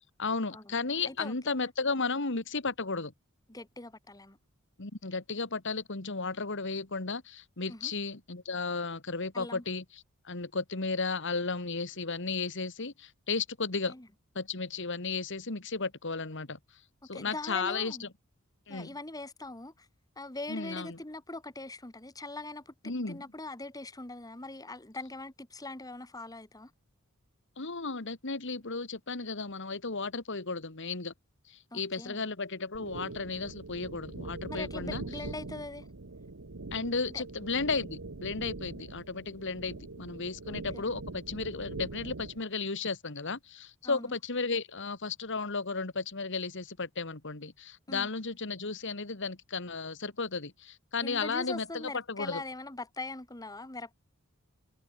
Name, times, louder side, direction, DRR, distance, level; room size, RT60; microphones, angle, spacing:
voice 1, 0.2-3.1 4.8-9.8 10.3-13.9 14.4-16.6 17.1-18.1 18.7-18.9 20.5-21.0 22.8-23.2 27.6-31.1 31.5-35.0 36.7-52.4, left 4 dB, 60° left, 2.0 m, -34 dB
voice 2, 3.5-4.4 7.7-7.9 9.3-9.6 13.9-14.1 17.1-18.1 18.7-19.9 20.2-22.7 23.1-26.7 31.7-32.2 34.5-35.9 37.1-37.2 40.5-40.9 43.8-44.2 47.9-48.1 51.0-54.0, left 2 dB, 15° left, 1.6 m, -42 dB
sound 1, 32.7-42.4, right 3 dB, 70° right, 1.2 m, -43 dB
head